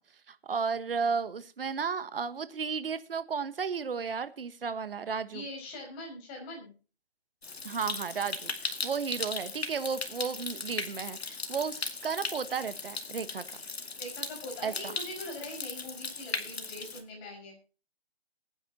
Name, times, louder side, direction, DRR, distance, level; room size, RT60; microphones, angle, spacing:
voice 1, 0.3-5.4 7.6-13.4 14.6-14.9, right 6 dB, 65° right, 13 dB, 1.4 m, -33 dB
voice 2, 5.3-6.7 14.0-17.5, left 1 dB, 20° left, 1 dB, 5.5 m, -42 dB
Stream, 7.4-17.0, left 4 dB, 85° left, 2.3 m, -38 dB
22.0 x 9.8 x 2.9 m, 0.35 s
hypercardioid pair, 160°, 31 cm